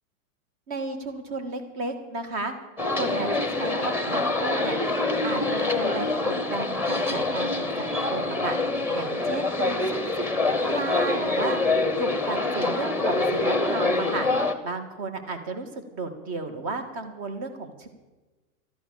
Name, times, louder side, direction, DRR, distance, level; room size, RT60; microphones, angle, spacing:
voice 1, 0.7-2.5 2.9-4.8 5.2-8.6 8.9-11.6 12.0-17.9, right 3 dB, 45° right, 7 dB, 2.5 m, -33 dB
sound 1, 2.8-14.5, left 2 dB, 5° right, 0.9 m, -25 dB
13.5 x 11.5 x 6.7 m, 1.2 s
hypercardioid pair, 135°, 42 cm